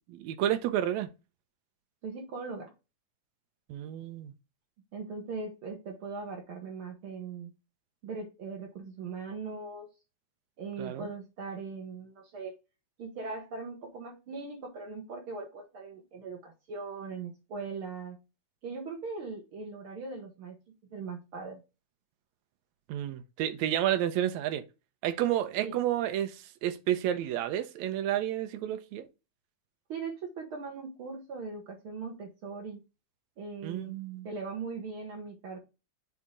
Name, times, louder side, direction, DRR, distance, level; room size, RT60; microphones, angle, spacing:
voice 1, 0.1-1.1 3.7-4.3 10.8-11.1 22.9-24.6 25.0-29.1 33.6-34.3, right 11 dB, 75° right, 2.0 m, -30 dB
voice 2, 2.0-2.7 4.9-7.5 8.0-9.9 10.6-12.5 13.0-18.2 18.6-20.6 20.9-21.6 25.6-25.7 29.9-32.8 33.4-33.9 34.2-35.6, right 4 dB, 60° right, 1.6 m, -40 dB
8.2 x 2.8 x 5.0 m
omnidirectional pair, 3.5 m